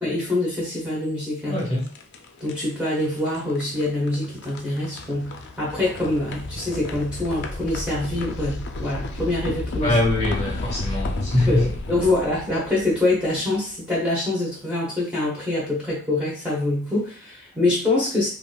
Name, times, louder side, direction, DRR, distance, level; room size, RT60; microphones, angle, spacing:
voice 1, 0.0-1.6 2.4-10.0 11.5-18.3, left 2 dB, 5° right, -6 dB, 0.7 m, -25 dB
voice 2, 1.4-1.8 9.8-11.6, left 1 dB, 30° left, -3 dB, 1.2 m, -22 dB
sound 1, 1.5-13.6, left 2 dB, 55° left, 0.4 m, -33 dB
3.5 x 2.4 x 2.2 m, 0.43 s
head